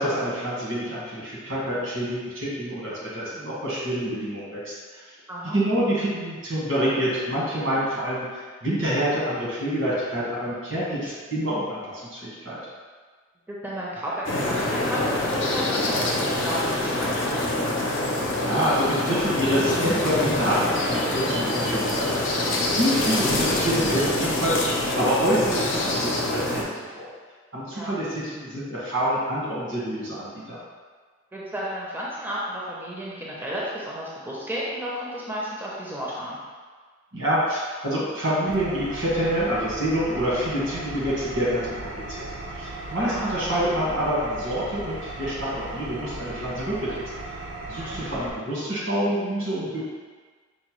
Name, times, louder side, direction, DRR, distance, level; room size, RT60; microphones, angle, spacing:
voice 1, 0.0-4.7 5.5-12.6 18.4-22.5 22.8-27.1 27.5-30.6 37.1-42.2 42.5-47.0 47.7-49.8, equal, 80° right, -7 dB, 1.4 m, -27 dB
voice 2, 5.3-5.6 13.5-17.5 22.8-23.1 27.7-27.9 31.3-36.4 43.0-43.3 47.8-48.0, equal, 10° right, -6 dB, 0.5 m, -33 dB
sound 1, 14.2-26.6, left 1 dB, 65° left, 0.6 m, -25 dB
Engine, 38.5-48.3, right 2 dB, 65° right, 0.5 m, -37 dB
5.1 x 2.1 x 3.0 m, 1.5 s
head